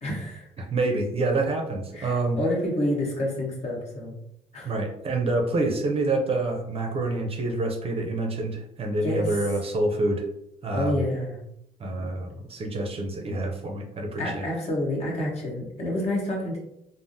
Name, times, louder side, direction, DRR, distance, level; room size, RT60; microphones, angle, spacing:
voice 1, 0.0-0.5 1.9-4.2 4.5-4.7 9.0-9.4 10.7-11.4 12.0-12.1 14.2-16.6, left 1 dB, 40° left, -2 dB, 1.1 m, -28 dB
voice 2, 0.6-2.4 4.6-10.2 10.6-11.0 11.8-14.5, right 2 dB, 35° right, 2 dB, 0.5 m, -27 dB
3.3 x 2.0 x 2.6 m, 0.80 s
cardioid pair, 110°, 17 cm